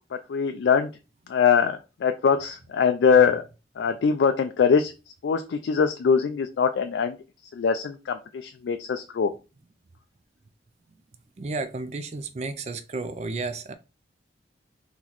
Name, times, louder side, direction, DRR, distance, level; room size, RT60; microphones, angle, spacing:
voice 1, 0.1-0.9 1.3-3.4 3.8-4.9 5.2-7.2 7.5-9.3, left 6 dB, 80° left, 0.3 m, -22 dB
voice 2, 11.4-13.7, right 3 dB, 40° right, 0.4 m, -32 dB
3.9 x 2.9 x 3.0 m
head